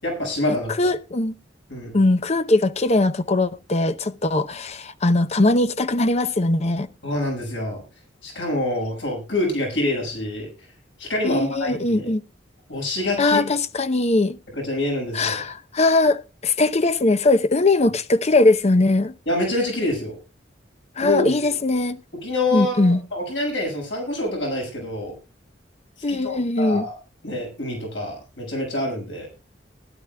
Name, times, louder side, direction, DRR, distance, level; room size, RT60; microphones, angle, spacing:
voice 1, 0.0-0.7 1.7-2.0 7.0-7.8 8.2-10.5 11.0-12.1 12.7-13.4 14.5-15.4 19.3-20.2 21.0-21.3 22.2-25.1 26.1-26.9 27.2-29.3, left 1 dB, 85° left, 6.1 m, -26 dB
voice 2, 0.8-1.3 1.9-6.9 11.2-12.2 13.2-14.4 15.1-19.1 21.0-22.0 22.5-23.0 26.0-26.8, left 2 dB, 35° left, 0.7 m, -20 dB
20.0 x 12.0 x 2.2 m
head